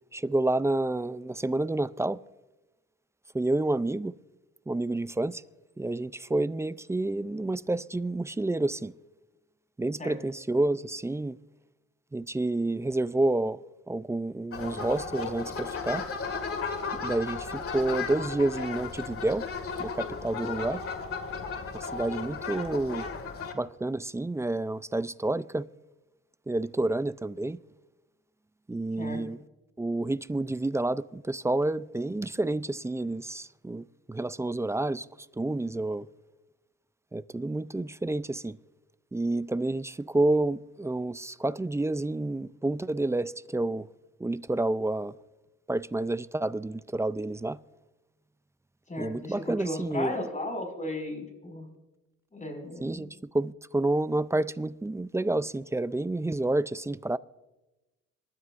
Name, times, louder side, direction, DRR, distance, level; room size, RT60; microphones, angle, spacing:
voice 1, 0.1-2.2 3.3-4.1 4.7-5.4 5.8-8.9 9.8-11.4 12.1-13.6 13.9-16.1 17.0-19.4 19.8-20.8 21.9-23.1 23.5-25.7 26.5-27.6 28.7-29.4 29.8-35.1 35.4-36.1 37.1-38.6 39.1-43.9 44.2-45.1 45.7-47.6 49.0-50.1 52.8-57.2, right 2 dB, 10° right, 0.4 m, -29 dB
sound 1, 14.5-23.5, left 5 dB, 50° left, 2.0 m, -35 dB
voice 2, 48.9-51.7 52.3-53.1, left 1 dB, 25° left, 5.5 m, -35 dB
27.0 x 12.5 x 2.5 m
cardioid pair, 90°, 30 cm